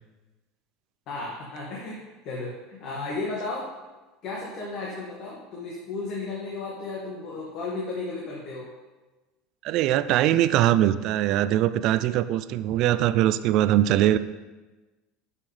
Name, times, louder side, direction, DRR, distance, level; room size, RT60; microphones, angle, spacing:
voice 1, 1.1-3.7 4.2-8.7, left 3 dB, 55° left, -4 dB, 1.8 m, -34 dB
voice 2, 9.6-14.2, right 13 dB, 55° right, 14 dB, 0.4 m, -22 dB
10.5 x 5.7 x 3.3 m, 1.2 s
supercardioid pair, 115°, 0 cm